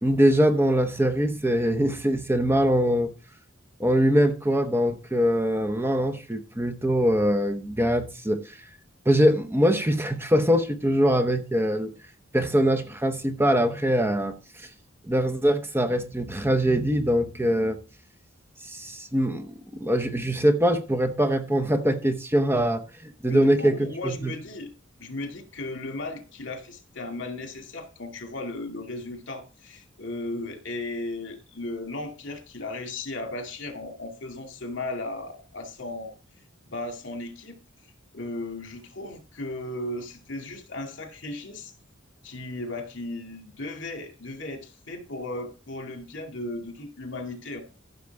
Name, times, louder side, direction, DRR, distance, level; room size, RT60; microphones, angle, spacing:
voice 1, 0.0-3.1 3.8-8.6 9.1-11.9 12.3-14.7 15.0-17.8 18.6-23.8 24.0-24.3, equal, 10° right, 0.8 m, -23 dB
voice 2, 23.3-24.7 25.0-36.1 36.7-37.6 38.1-41.7 42.2-47.6, left 2 dB, 65° left, 2.4 m, -36 dB
15.0 x 6.6 x 3.5 m
head